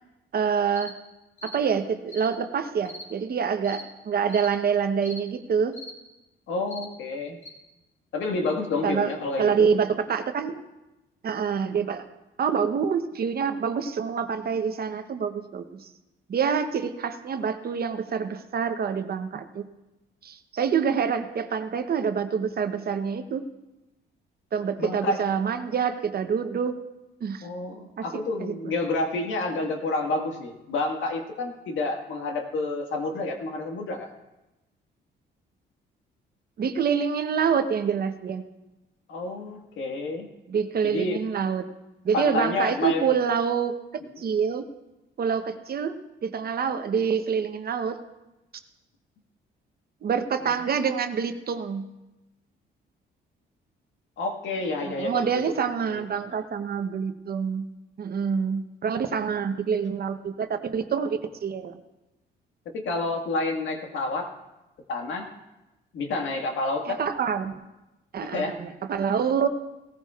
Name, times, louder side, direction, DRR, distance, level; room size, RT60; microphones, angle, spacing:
voice 1, 0.3-0.9 1.4-5.8 8.8-9.1 9.4-10.6 11.2-12.0 12.4-15.9 16.3-19.7 20.2-23.4 24.5-26.8 27.2-27.5 28.0-28.1 28.4-28.9 36.6-38.4 40.5-41.6 42.0-43.7 44.2-44.6 45.2-46.0 46.2-48.0 50.0-51.9 54.8-57.7 58.0-61.8 66.9-67.5 68.1-69.5, right 6 dB, 50° right, 8 dB, 0.9 m, -26 dB
sound 1, 0.7-0.9 1.4-1.6 2.1-2.3 2.9-3.1 3.6-3.8 4.3-4.5 5.0-5.2 5.7-5.9 6.7-6.9 7.4-7.5, left 1 dB, 35° left, 2.7 m, -41 dB
voice 2, 6.5-7.4 8.1-9.7 24.8-25.2 27.4-34.1 39.1-40.3 40.8-41.2 42.1-43.0 50.4-50.5 54.2-56.2 62.7-64.3 64.9-65.3 65.9-67.0 68.3-68.6, left 2 dB, 75° left, 3 dB, 1.7 m, -29 dB
18.0 x 14.5 x 2.4 m, 1.0 s
cardioid pair, 90°, 20 cm